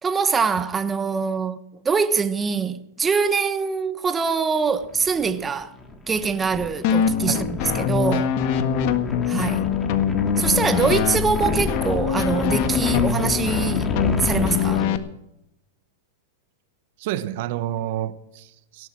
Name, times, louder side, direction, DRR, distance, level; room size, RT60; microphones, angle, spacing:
voice 1, 0.0-5.8 6.1-8.3 9.3-9.7 10.4-13.9 14.2-14.8, right 5 dB, 15° right, 1.1 m, -24 dB
sound 1, 4.8-14.9, left 2 dB, 15° left, 2.4 m, -31 dB
sound 2, 6.8-15.0, left 8 dB, 55° left, 1.6 m, -23 dB
voice 2, 17.0-18.9, right 13 dB, 60° right, 1.1 m, -29 dB
17.0 x 11.5 x 6.3 m
hypercardioid pair, 130°, 0 cm